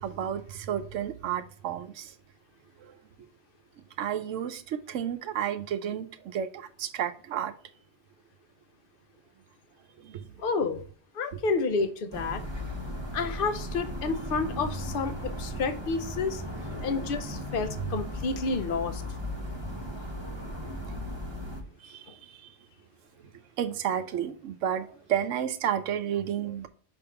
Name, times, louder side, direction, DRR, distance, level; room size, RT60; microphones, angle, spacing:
voice 1, 0.0-2.1 2.8-2.9 4.0-7.5 10.0-10.3 21.8-22.4 23.6-26.7, right 9 dB, 85° right, 1.0 m, -32 dB
voice 2, 10.4-10.8 11.1-12.4 13.1-16.4 16.8-19.0, left 4 dB, 50° left, 0.8 m, -30 dB
sound 1, 12.1-21.6, equal, 25° right, 1.0 m, -36 dB
5.7 x 3.6 x 5.7 m
omnidirectional pair, 1.3 m